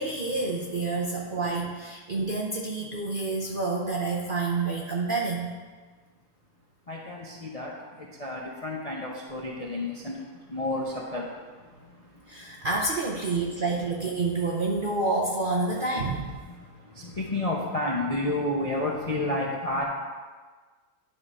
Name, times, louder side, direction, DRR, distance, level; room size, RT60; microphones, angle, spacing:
voice 1, 0.0-5.6 12.3-16.4, right 3 dB, 45° right, -2 dB, 0.7 m, -28 dB
voice 2, 6.9-12.6 16.5-19.8, left 2 dB, 35° left, -3 dB, 0.6 m, -31 dB
11.0 x 3.8 x 5.4 m, 1.4 s
omnidirectional pair, 1.7 m